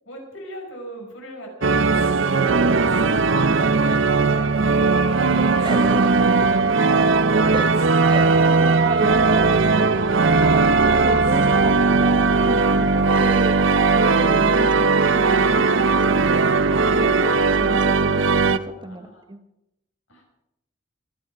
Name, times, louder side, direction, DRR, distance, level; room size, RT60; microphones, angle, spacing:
voice 1, 0.1-5.0 18.4-19.3 20.1-20.2, equal, 80° left, 1 dB, 5.4 m, -40 dB
sound 1, 1.6-18.6, right 4 dB, 85° right, 0.8 m, -18 dB
Wind instrument woodwind instrument, 4.1-14.2, right 3 dB, 55° right, 1.2 m, -25 dB
voice 2, 5.4-6.2 7.5-7.7 8.1-13.6 13.9-19.4, right 1 dB, 25° right, 9 dB, 1.0 m, -33 dB
25.0 x 9.1 x 4.7 m, 0.86 s
head